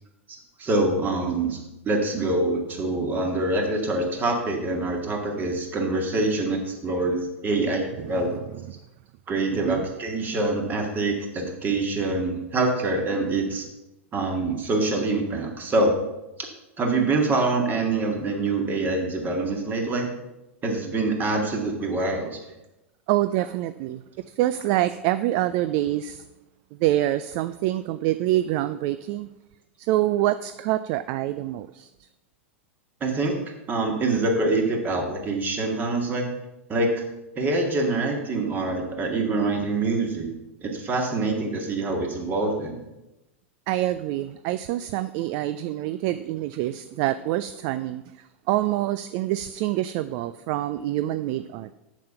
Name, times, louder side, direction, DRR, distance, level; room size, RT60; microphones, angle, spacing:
voice 1, 0.6-1.6 1.8-8.5 9.3-13.6 14.1-15.9 16.8-20.1 20.6-22.4 33.0-33.4 33.7-36.3 36.7-37.0 37.4-40.3 40.6-42.8, right 2 dB, 25° right, 2 dB, 2.0 m, -25 dB
voice 2, 8.1-8.6 9.5-9.9 23.1-24.0 24.4-26.2 26.8-29.3 29.8-31.9 43.7-48.0 48.5-51.7, right 14 dB, 45° right, 13 dB, 0.4 m, -26 dB
7.3 x 7.2 x 5.7 m, 0.96 s
figure-of-eight pair, 95°, 7 cm